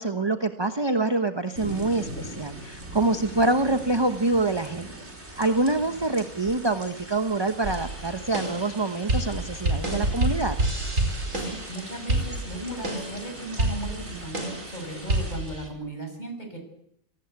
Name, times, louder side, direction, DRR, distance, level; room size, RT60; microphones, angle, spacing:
voice 1, 0.0-4.9 5.4-10.6, right 2 dB, 20° right, 8 dB, 1.0 m, -25 dB
sound 1, 1.5-15.4, right 1 dB, 50° right, 5.5 m, -41 dB
sound 2, 7.6-15.7, right 1 dB, 65° right, 5.5 m, -29 dB
voice 2, 11.3-16.6, right 1 dB, 30° left, 4 dB, 7.0 m, -37 dB
26.5 x 18.5 x 8.2 m, 0.72 s
omnidirectional pair, 1.4 m